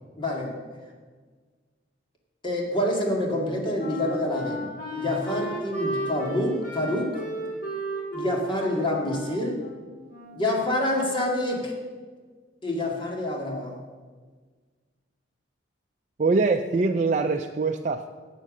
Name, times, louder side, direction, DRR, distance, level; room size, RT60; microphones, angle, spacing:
voice 1, 0.2-0.6 2.4-7.2 8.1-9.6 10.3-11.7 12.6-13.8, left 1 dB, 30° left, 0 dB, 2.2 m, -27 dB
Wind instrument woodwind instrument, 3.3-10.6, right 1 dB, 50° left, 3.5 m, -34 dB
voice 2, 16.2-18.1, right 3 dB, 40° right, 4 dB, 0.5 m, -23 dB
10.5 x 8.3 x 6.6 m, 1.5 s
head